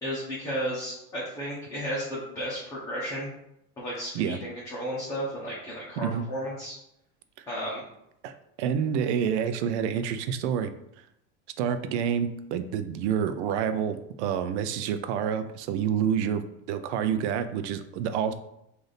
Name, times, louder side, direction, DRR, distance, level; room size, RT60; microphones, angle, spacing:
voice 1, 0.0-3.3 3.8-6.8 7.5-7.8, equal, 10° left, -9 dB, 0.7 m, -33 dB
voice 2, 6.0-6.3 7.4-7.5 8.2-8.3 8.6-10.7 11.6-16.4 16.7-18.3, right 8 dB, 90° right, 10 dB, 0.5 m, -28 dB
3.3 x 2.6 x 3.9 m, 0.80 s
cardioid pair, 175°, 33 cm